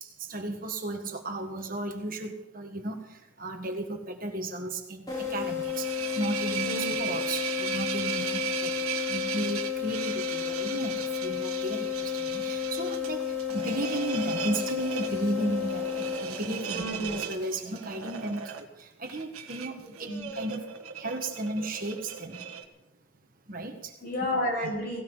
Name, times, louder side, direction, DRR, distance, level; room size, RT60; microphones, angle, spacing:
voice 1, 0.0-5.9 6.1-8.7 9.1-15.9 16.2-20.6 21.0-22.4 23.5-23.9, right 2 dB, 40° right, 3 dB, 1.6 m, -34 dB
sound 1, 5.1-16.8, left 9 dB, 20° left, 5.4 m, -32 dB
sound 2, 5.6-22.6, right 8 dB, 90° right, 1.6 m, -37 dB
voice 2, 6.6-7.0 16.7-17.2 20.1-20.3 24.0-25.0, equal, 45° left, -1 dB, 7.0 m, -31 dB
18.0 x 18.0 x 4.0 m, 0.93 s
head